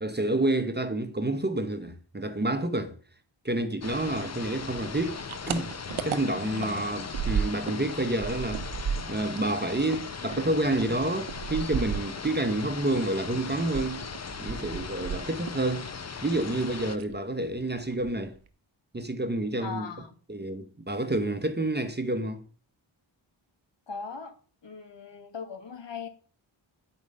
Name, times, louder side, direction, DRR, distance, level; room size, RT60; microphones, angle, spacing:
voice 1, 0.0-2.9 3.4-5.2 5.5-14.1 14.4-15.9 16.2-18.4 18.9-19.9 20.3-22.4, right 2 dB, 20° right, 1.0 m, -29 dB
sound 1, 3.8-17.0, left 5 dB, 35° left, 0.8 m, -38 dB
sound 2, 4.8-7.9 8.1-12.6 12.9-15.7 15.9-16.6 16.9-17.2 17.5-17.6 17.9-18.5, right 7 dB, 85° right, 0.8 m, -34 dB
voice 2, 6.4-6.8 19.6-20.2 23.9-24.3 24.6-26.1, left 5 dB, 60° left, 1.8 m, -39 dB
8.9 x 4.9 x 5.4 m
cardioid pair, 55°, 48 cm